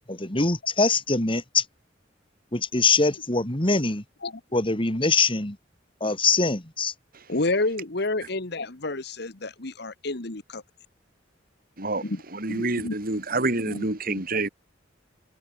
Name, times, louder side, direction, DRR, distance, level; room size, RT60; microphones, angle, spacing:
voice 1, 0.1-1.7 2.5-4.0 4.5-5.6 6.0-6.9, left 3 dB, 30° left, 3.3 m, -23 dB
voice 2, 7.3-10.6 12.0-12.2 12.5-12.9 13.6-13.9, left 2 dB, 60° left, 1.7 m, -29 dB
voice 3, 12.3-14.5, right 2 dB, 50° right, 3.5 m, -27 dB
head